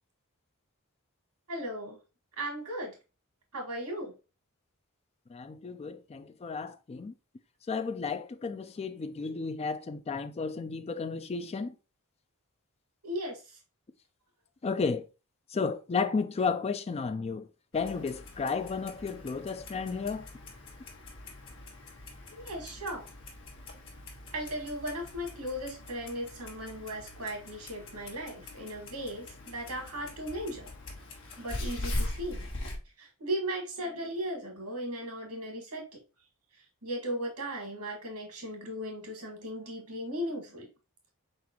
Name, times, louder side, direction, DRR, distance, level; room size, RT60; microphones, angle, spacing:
voice 1, 1.5-2.0 2.4-2.9 3.5-4.1 13.0-13.4 22.4-23.1 24.3-30.7 31.4-32.5 33.0-35.8 36.8-40.7, equal, 80° right, 1.9 m, -37 dB
voice 2, 5.3-7.1 7.7-11.7 14.6-15.0 15.5-17.5 17.7-20.3, left 5 dB, 30° left, 0.4 m, -33 dB
Clock, 17.7-32.8, left 1 dB, 60° left, 1.3 m, -42 dB
4.5 x 3.9 x 2.9 m
head